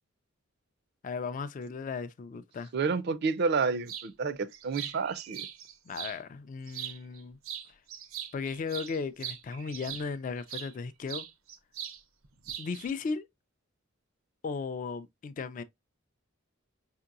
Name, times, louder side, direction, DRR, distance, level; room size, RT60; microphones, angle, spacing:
voice 1, 1.0-2.7 5.9-7.4 7.7-7.8 8.3-11.2 12.6-13.3 14.4-15.6, left 5 dB, 40° left, 0.3 m, -36 dB
voice 2, 2.7-5.5, right 4 dB, 50° right, 0.4 m, -29 dB
sound 1, 3.9-4.1 4.5-6.2 6.7-7.2 7.4-10.7 11.1-12.0 12.2-12.9, right 10 dB, 85° right, 0.7 m, -41 dB
5.2 x 2.8 x 2.4 m
head